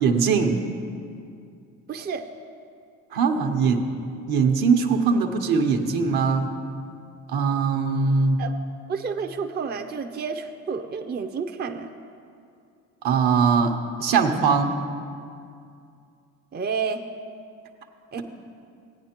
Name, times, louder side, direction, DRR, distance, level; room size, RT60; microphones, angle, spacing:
voice 1, 0.0-0.6 3.1-3.8 4.3-6.5 7.3-8.4 13.0-14.8, right 5 dB, 65° right, 4 dB, 1.1 m, -21 dB
voice 2, 1.9-2.2 8.4-8.5 8.9-11.9 16.5-17.0 18.1-18.2, right 5 dB, 25° right, 5 dB, 0.6 m, -30 dB
16.5 x 9.2 x 3.0 m, 2.4 s
hypercardioid pair, 60°, 40 cm